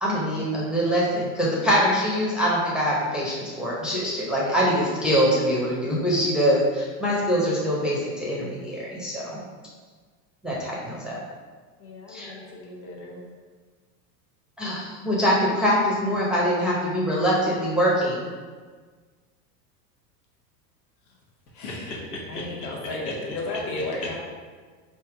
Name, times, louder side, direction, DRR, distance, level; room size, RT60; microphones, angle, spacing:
voice 1, 0.0-9.4 10.4-11.2 12.1-12.3 14.6-18.2, equal, ahead, -5 dB, 0.7 m, -24 dB
voice 2, 11.8-13.2 21.5-21.9 22.3-24.2, left 2 dB, 40° left, -2 dB, 1.1 m, -34 dB
voice 3, 21.6-22.7 23.0-23.1 23.5-23.6 24.0-24.2, left 2 dB, 75° left, -4 dB, 1.5 m, -36 dB
3.4 x 2.7 x 4.6 m, 1.5 s
hypercardioid pair, 110°, 48 cm